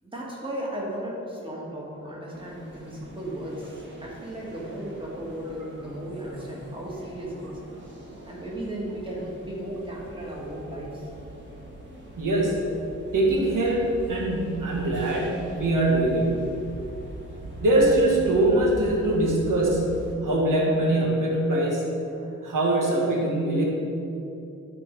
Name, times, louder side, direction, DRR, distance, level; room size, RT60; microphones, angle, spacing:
voice 1, 0.0-7.6 8.2-11.1, right 1 dB, 15° right, -4 dB, 1.6 m, -35 dB
sound 1, 2.3-20.2, right 1 dB, 40° right, 1.3 m, -42 dB
voice 2, 12.2-12.6 13.1-16.4 17.6-21.9 22.4-23.7, right 1 dB, 85° right, -2 dB, 1.6 m, -23 dB
12.0 x 4.4 x 5.2 m, 2.8 s
wide cardioid pair, 160°, 31 cm